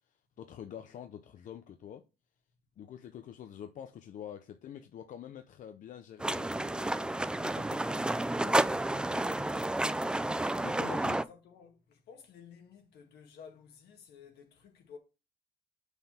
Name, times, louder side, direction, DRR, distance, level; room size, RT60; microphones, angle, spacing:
voice 1, 0.4-2.0 2.8-8.1 8.4-8.6 8.9-10.0 10.6-11.2, left 9 dB, 50° left, 0.6 m, -47 dB
sound 1, 6.2-11.2, right 1 dB, 5° right, 0.3 m, -31 dB
voice 2, 10.9-15.0, left 7 dB, 70° left, 1.9 m, -54 dB
5.7 x 5.7 x 4.3 m
cardioid pair, 110°, 17 cm